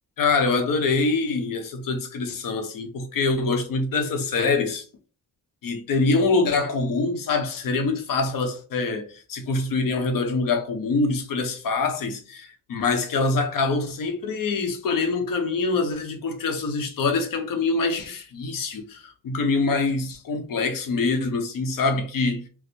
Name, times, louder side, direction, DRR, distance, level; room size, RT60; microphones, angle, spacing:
voice 1, 0.2-4.9 5.6-22.4, left 3 dB, 70° left, 0.8 m, -25 dB
4.3 x 2.1 x 2.7 m
cardioid pair, 95°, 35 cm